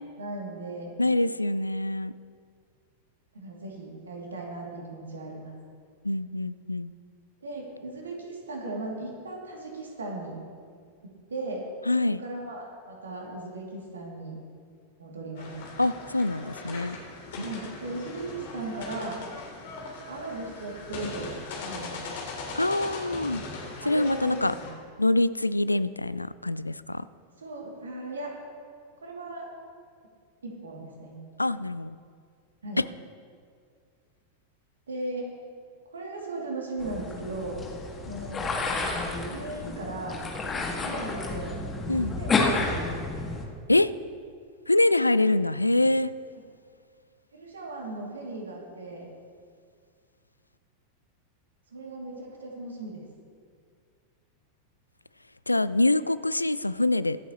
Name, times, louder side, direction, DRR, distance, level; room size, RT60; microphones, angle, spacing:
voice 1, 0.2-1.0 3.3-5.5 7.4-10.4 11.0-11.6 12.2-14.4 15.0-15.6 17.4-19.2 20.1-22.0 23.8-24.7 27.4-28.3 29.0-29.5 30.4-31.2 32.6-32.8 34.9-35.3 35.9-37.6 38.1-38.5 39.3-40.2 40.8-41.6 42.1-42.9 47.3-49.1 51.7-53.0, right 2 dB, 70° right, -1 dB, 2.6 m, -37 dB
voice 2, 1.0-2.1 6.0-6.9 11.9-12.2 15.8-17.0 17.4-17.5 22.6-23.4 23.8-24.5 25.0-27.1 31.4-32.0 32.8-32.9 41.9-42.2 43.7-43.9 44.7-46.1 55.5-57.3, left 2 dB, 85° left, 16 dB, 0.3 m, -25 dB
sound 1, 15.4-24.7, left 3 dB, 55° left, 2.9 m, -40 dB
sound 2, 36.8-43.4, left 3 dB, 20° left, 1.9 m, -30 dB
23.0 x 8.2 x 3.0 m, 2.1 s
figure-of-eight pair, 90°, 0 cm